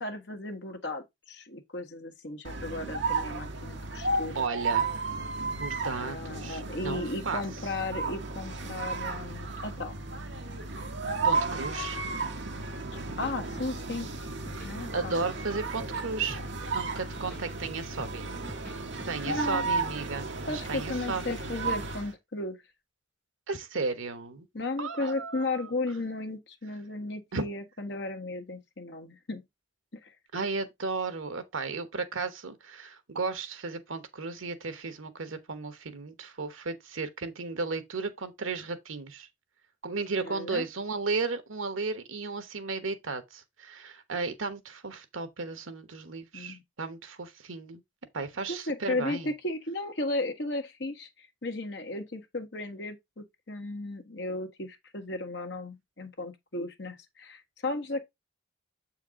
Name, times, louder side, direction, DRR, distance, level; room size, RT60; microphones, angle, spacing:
voice 1, 0.0-4.5 6.0-9.9 12.9-14.1 14.6-15.2 19.3-19.7 20.5-22.6 24.5-29.4 30.0-30.1 40.2-40.7 46.3-46.6 48.5-58.0, left 2 dB, 60° left, 1.4 m, -35 dB
sound 1, 2.4-22.1, right 3 dB, 65° right, 1.2 m, -34 dB
voice 2, 4.3-4.9 5.4-7.4 11.2-12.0 14.6-16.4 16.7-18.3 19.1-21.4 23.5-24.5 24.8-25.7 27.3-27.4 30.3-39.3 39.8-47.8 48.1-49.3, right 4 dB, 85° right, 1.2 m, -34 dB
sound 2, 12.9-13.9 14.3-15.4 15.7-16.6 17.0-18.7 19.0-19.9, equal, 10° left, 4.1 m, -46 dB
7.6 x 4.6 x 3.6 m
head